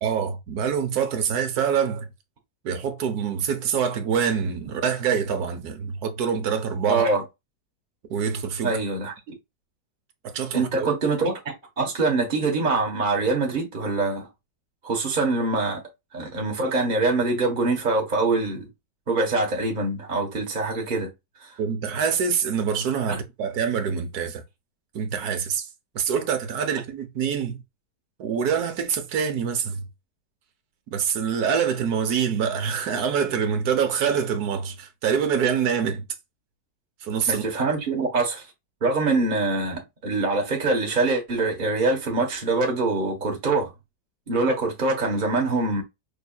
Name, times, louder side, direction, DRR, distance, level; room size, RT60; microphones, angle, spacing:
voice 1, 0.0-2.1 2.6-7.0 8.1-8.7 10.3-10.9 21.6-24.4 24.9-25.7 25.9-27.6 28.2-29.8 30.9-36.1 37.0-37.4, right 7 dB, 65° right, 1.4 m, -25 dB
voice 2, 6.9-7.2 8.6-9.3 10.5-11.4 11.8-14.3 14.8-15.8 16.1-18.7 19.1-21.1 21.4-21.5 23.1-23.2 37.3-38.5 38.8-43.7 44.3-45.8, right 3 dB, 30° right, 1.2 m, -24 dB
5.4 x 3.5 x 2.3 m
omnidirectional pair, 1.8 m